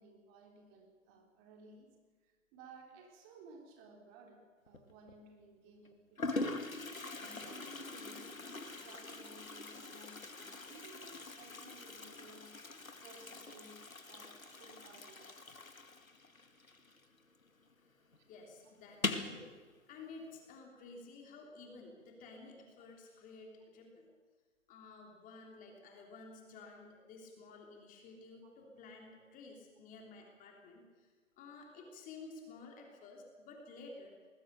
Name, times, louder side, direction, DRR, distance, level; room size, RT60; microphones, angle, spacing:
voice 1, 0.0-1.9 2.2-12.5 13.0-15.5 18.2-18.3, right 3 dB, 30° right, 2 dB, 3.6 m, -58 dB
Toilet flush, 4.7-5.1 5.9-6.0 6.2-17.5 17.7-17.8 18.1-18.2 18.9-19.4, left 3 dB, 90° left, 2.2 m, -43 dB
voice 2, 18.3-19.5 19.9-24.1 24.7-31.1 31.4-34.1, left 3 dB, 20° left, 1 dB, 3.4 m, -53 dB
20.0 x 20.0 x 6.8 m, 1.4 s
figure-of-eight pair, 130°, 40 cm